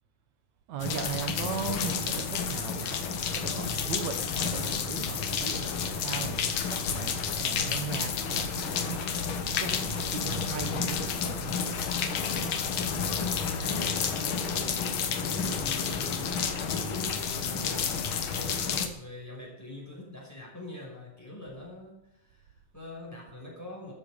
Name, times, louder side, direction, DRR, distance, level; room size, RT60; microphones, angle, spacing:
voice 1, 0.7-3.0 3.3-9.0 9.6-11.6, right 7 dB, 65° right, 9 dB, 2.1 m, -38 dB
sound 1, 0.8-18.9, left 6 dB, 65° left, 1.2 m, -30 dB
voice 2, 13.0-18.0 18.3-23.9, left 1 dB, 5° left, -3 dB, 5.4 m, -44 dB
14.0 x 13.5 x 5.0 m, 0.86 s
omnidirectional pair, 4.1 m